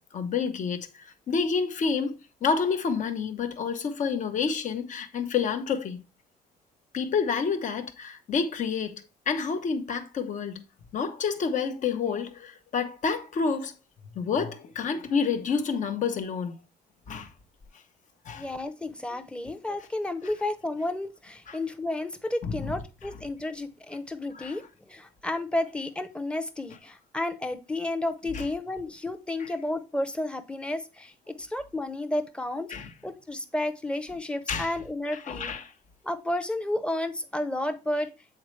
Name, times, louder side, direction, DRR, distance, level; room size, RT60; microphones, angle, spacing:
voice 1, 0.0-6.0 6.9-10.6 10.9-13.7 14.1-16.6 17.1-17.3 18.2-18.5 21.5-21.6 22.4-22.8 24.3-24.6 28.3-28.4 29.4-29.5 32.7-32.9 34.5-34.7 35.1-35.7, left 5 dB, 45° left, 1.0 m, -29 dB
voice 2, 18.4-31.1 31.4-32.7 33.0-35.5 36.0-38.1, left 1 dB, 5° left, 0.8 m, -32 dB
7.8 x 4.2 x 3.2 m
cardioid pair, 110°, 17 cm